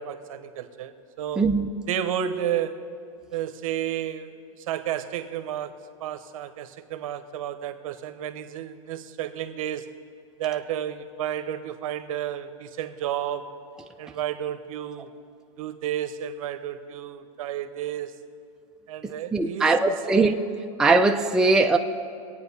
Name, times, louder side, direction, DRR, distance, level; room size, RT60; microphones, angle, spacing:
voice 1, 0.0-1.4 1.9-2.9 3.3-5.7 6.0-9.9 10.4-13.5 14.0-15.2 15.6-18.1 18.9-20.0, right 10 dB, 70° right, 0.9 m, -32 dB
voice 2, 1.4-1.7 19.3-20.4 20.8-21.8, right 3 dB, 5° right, 0.4 m, -20 dB
22.5 x 8.8 x 4.2 m
supercardioid pair, 140°, 18 cm